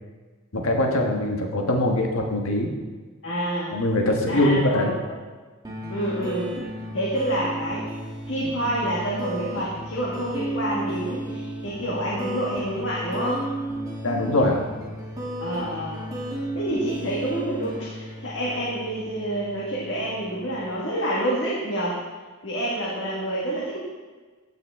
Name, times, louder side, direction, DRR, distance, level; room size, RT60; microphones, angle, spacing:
voice 1, 0.5-2.7 3.7-5.0 14.0-14.6, left 1 dB, 85° left, 2 dB, 1.5 m, -22 dB
voice 2, 3.2-3.8 4.3-5.1 5.9-6.5 6.9-7.8 8.3-13.5 15.4-16.0 16.5-22.0 22.4-23.8, right 1 dB, 60° left, -5 dB, 1.8 m, -28 dB
sound 1, 5.6-20.7, right 1 dB, 20° right, 1.5 m, -34 dB
15.0 x 5.9 x 3.6 m, 1.4 s
head